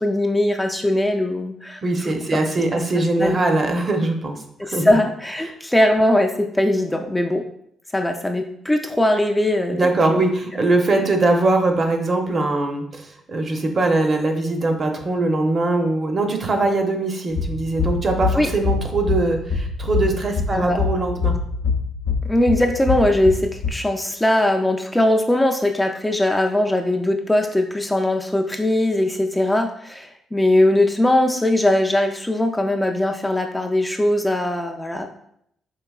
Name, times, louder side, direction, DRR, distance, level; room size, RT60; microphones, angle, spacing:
voice 1, 0.0-2.1 2.7-2.8 3.2-3.4 4.8-7.4 7.9-10.2 10.5-10.6 18.3-18.5 20.5-20.8 22.3-35.1, left 1 dB, 10° left, 3 dB, 0.3 m, -20 dB
voice 2, 1.8-4.4 4.6-4.9 9.7-13.0 13.3-21.3, right 2 dB, 40° right, 4 dB, 0.6 m, -21 dB
sound 1, 17.3-23.7, left 4 dB, 80° left, 0.5 m, -25 dB
4.6 x 3.0 x 2.3 m, 0.70 s
cardioid pair, 90°, 0 cm